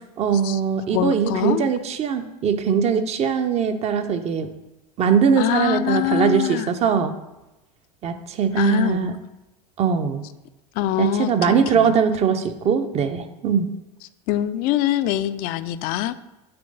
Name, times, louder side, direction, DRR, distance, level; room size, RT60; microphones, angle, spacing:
voice 1, 0.2-4.5 5.0-7.1 8.0-9.2 9.8-10.2 11.0-13.7, right 7 dB, 30° right, 9 dB, 0.6 m, -21 dB
voice 2, 0.9-1.6 5.4-6.7 8.6-9.1 10.8-11.9 14.3-16.1, left 12 dB, 45° left, 14 dB, 0.4 m, -24 dB
6.9 x 3.1 x 5.3 m, 0.99 s
hypercardioid pair, 90°, 21 cm